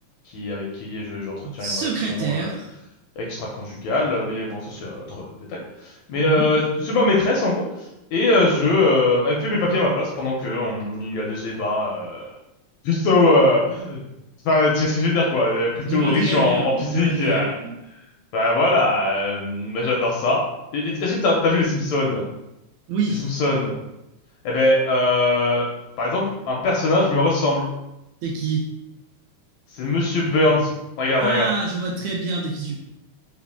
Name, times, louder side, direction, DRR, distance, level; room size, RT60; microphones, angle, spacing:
voice 1, 0.3-2.5 3.2-5.6 6.1-7.7 8.1-12.2 12.8-14.0 14.4-17.5 18.3-20.4 20.7-22.2 23.2-23.7 24.4-25.7 26.0-27.7 29.7-31.5, left 2 dB, 80° left, -2 dB, 1.7 m, -21 dB
voice 2, 1.4-2.7 6.2-6.5 15.9-17.8 22.9-23.3 28.2-28.7 31.2-32.8, right 4 dB, 80° right, -2 dB, 1.7 m, -26 dB
4.9 x 2.5 x 3.4 m, 0.90 s
omnidirectional pair, 3.6 m